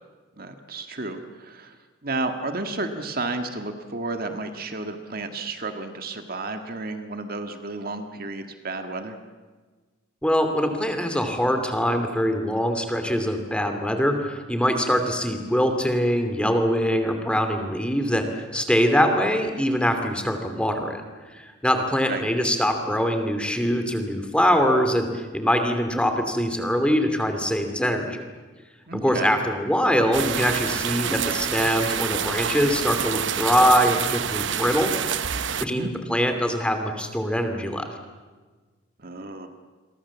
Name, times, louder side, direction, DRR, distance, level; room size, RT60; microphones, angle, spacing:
voice 1, 0.4-1.8 2.0-9.2 22.1-22.2 28.9-29.4 35.7-35.9 39.0-39.5, right 3 dB, 50° right, 6 dB, 1.9 m, -32 dB
voice 2, 10.2-21.0 21.3-28.2 28.9-35.2 35.6-37.9, equal, 5° left, 6 dB, 2.6 m, -23 dB
Rain - Moderate rain, 30.1-35.7, right 8 dB, 65° right, 0.9 m, -27 dB
28.5 x 23.0 x 7.3 m, 1.4 s
head